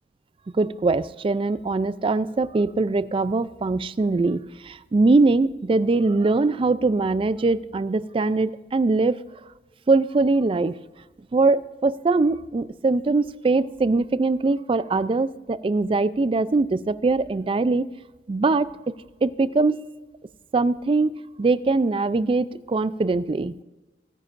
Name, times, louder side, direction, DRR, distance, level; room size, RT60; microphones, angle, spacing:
voice 1, 0.6-9.2 9.9-10.8 11.3-17.9 18.3-18.7 19.2-19.8 20.5-23.5, right 3 dB, 30° right, 16 dB, 0.3 m, -22 dB
19.0 x 9.6 x 2.5 m, 1.1 s
head